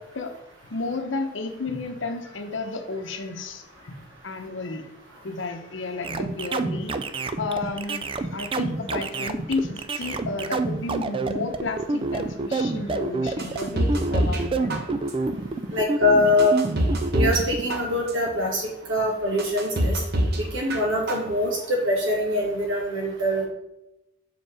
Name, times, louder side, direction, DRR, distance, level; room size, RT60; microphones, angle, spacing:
voice 1, 0.7-3.9 4.2-4.8 5.2-7.0 7.4-14.8, left 3 dB, 75° left, 6 dB, 0.9 m, -32 dB
sound 1, 6.0-17.7, right 3 dB, 30° right, 0.4 m, -28 dB
sound 2, 13.4-14.4 14.7-15.3 15.8-15.9 16.4-17.4 17.7-18.3 18.8-18.9 19.4-20.4 20.7-21.3 21.6-21.7, right 1 dB, 55° right, 0.9 m, -25 dB
voice 2, 15.7-16.5 17.1-20.0 20.4-23.5, left 1 dB, 80° right, -2 dB, 2.4 m, -23 dB
6.1 x 5.1 x 4.8 m, 0.89 s
head